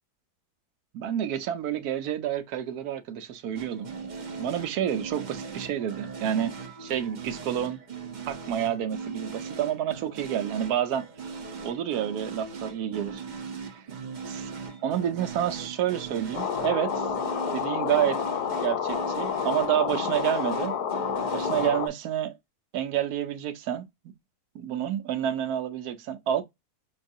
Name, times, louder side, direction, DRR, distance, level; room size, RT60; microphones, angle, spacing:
voice 1, 0.9-3.9 4.4-7.8 8.3-11.1 11.6-13.2 13.7-13.8 14.3-14.5 14.8-17.1 17.5-18.2 18.6-20.8 21.3-22.3 22.7-23.9 24.5-26.4, right 10 dB, 75° right, 1.2 m, -29 dB
sound 1, 3.5-21.9, right 5 dB, 45° right, 0.6 m, -39 dB
sound 2, 16.3-21.9, left 8 dB, 75° left, 1.2 m, -29 dB
6.2 x 2.3 x 2.6 m
omnidirectional pair, 1.7 m